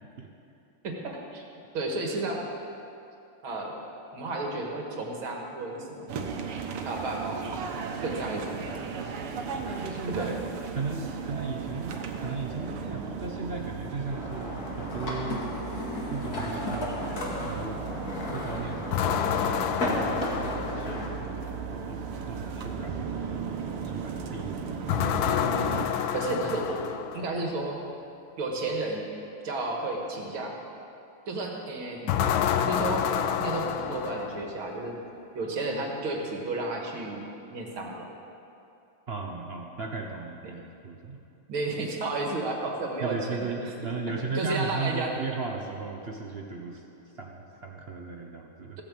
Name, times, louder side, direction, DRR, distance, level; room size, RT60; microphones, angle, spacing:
voice 1, 0.8-1.4 1.7-2.4 3.4-3.7 4.1-6.1 6.8-7.6 8.0-8.7 10.1-10.3 26.1-26.8 27.1-27.8 28.4-29.0 29.4-30.6 31.3-33.0 33.4-35.0 35.4-37.2 37.5-38.1 41.5-43.5 44.2-45.1, right 2 dB, 70° right, 0 dB, 2.5 m, -32 dB
sound 1, 6.1-25.9, right 5 dB, 85° right, 2.0 m, -36 dB
voice 2, 9.5-10.3 10.7-15.4 16.1-17.8 18.3-21.2 21.7-23.4 23.8-25.3 39.1-41.2 43.0-46.8 47.1-48.8, right 4 dB, 45° right, 1 dB, 0.8 m, -36 dB
sound 2, 14.1-21.1, left 2 dB, 45° left, 2.4 m, -34 dB
sound 3, 18.9-21.3 24.9-27.4 32.1-34.7, left 9 dB, 75° left, 1.4 m, -28 dB
16.0 x 8.9 x 7.6 m, 2.7 s
omnidirectional pair, 2.4 m